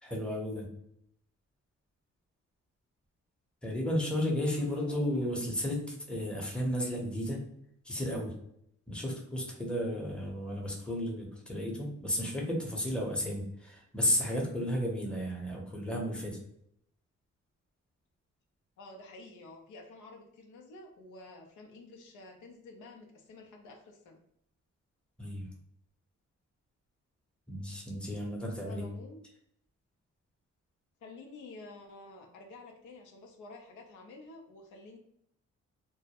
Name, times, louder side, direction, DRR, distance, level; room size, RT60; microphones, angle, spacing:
voice 1, 0.0-0.7 3.6-7.4 7.8-8.3 8.9-16.4 25.2-25.5 27.5-28.9, equal, 5° left, -1 dB, 0.7 m, -33 dB
voice 2, 4.6-5.2 18.8-24.2 28.6-29.2 31.0-35.0, left 2 dB, 85° left, 1 dB, 0.6 m, -50 dB
2.2 x 2.0 x 2.8 m, 0.73 s
cardioid pair, 80°, 29 cm